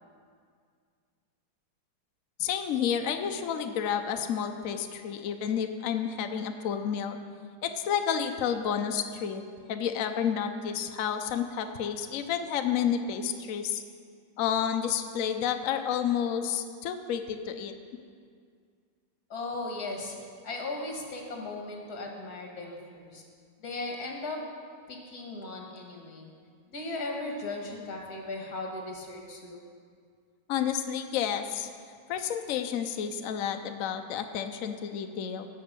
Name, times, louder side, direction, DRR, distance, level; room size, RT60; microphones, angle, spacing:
voice 1, 2.4-7.2 7.6-9.4 9.7-13.8 14.4-17.7 30.5-31.7 32.1-35.5, left 8 dB, 85° left, 7 dB, 0.7 m, -30 dB
voice 2, 19.3-20.1 20.4-23.2 23.6-24.4 24.9-26.3 26.7-29.6, left 2 dB, 50° left, 0 dB, 2.2 m, -37 dB
16.5 x 5.5 x 6.7 m, 2.1 s
omnidirectional pair, 2.3 m